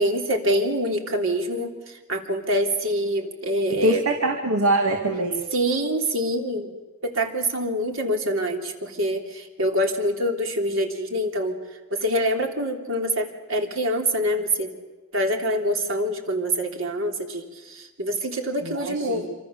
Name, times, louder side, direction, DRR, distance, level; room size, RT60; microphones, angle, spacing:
voice 1, 0.0-1.7 2.1-4.0 5.5-6.7 7.0-11.6 11.9-14.7 15.1-19.3, equal, 65° right, 3 dB, 3.3 m, -25 dB
voice 2, 3.8-5.4 18.6-19.3, right 1 dB, 85° right, 3 dB, 2.5 m, -23 dB
27.0 x 25.5 x 7.0 m, 1.2 s
head